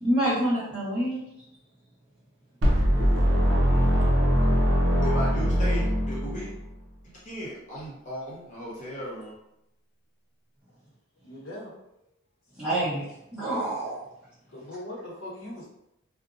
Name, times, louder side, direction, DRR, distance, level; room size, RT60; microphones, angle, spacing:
voice 1, 0.0-1.2 12.6-14.0, right 1 dB, 5° right, -11 dB, 1.1 m, -27 dB
sound 1, 2.6-6.6, equal, 65° right, 0.6 m, -22 dB
voice 2, 5.0-6.5 7.0-9.3, equal, 35° left, -6 dB, 0.6 m, -36 dB
voice 3, 11.2-11.7 14.5-15.7, left 1 dB, 70° left, -4 dB, 0.9 m, -40 dB
2.6 x 2.1 x 2.5 m, 0.82 s
head